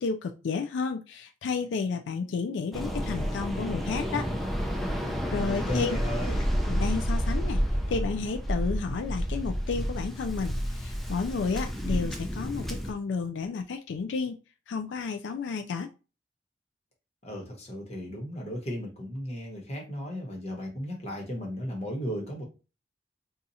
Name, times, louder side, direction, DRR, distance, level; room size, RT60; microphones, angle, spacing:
voice 1, 0.0-4.2 5.3-6.0 6.7-7.6 7.9-14.4 14.7-15.9, left 5 dB, 85° left, 6 dB, 0.3 m, -31 dB
Waves surf, 2.7-12.9, equal, ahead, 0.4 m, -30 dB
voice 2, 5.4-6.4 17.2-22.4, equal, 35° left, 0 dB, 1.0 m, -35 dB
2.7 x 2.4 x 4.0 m, 0.32 s
head